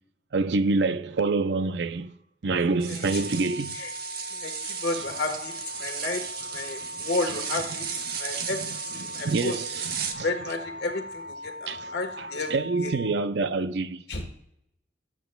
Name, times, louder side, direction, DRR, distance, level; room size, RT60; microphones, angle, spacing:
voice 1, 0.3-2.1 2.4-3.8 7.0-7.1 8.1-8.2 9.0-10.3 11.7-11.9 12.2-14.0, right 3 dB, 70° right, 0.5 m, -27 dB
sound 1, 2.8-10.1, right 7 dB, 50° right, 1.1 m, -35 dB
voice 2, 2.9-3.2 3.7-3.9 4.3-6.2 6.5-7.9 8.2-9.6 10.2-12.5 12.8-12.9 14.1-14.3, left 2 dB, 60° left, 1.4 m, -32 dB
sound 2, 3.1-13.1, left 2 dB, 90° right, 1.4 m, -40 dB
19.0 x 8.2 x 2.3 m
head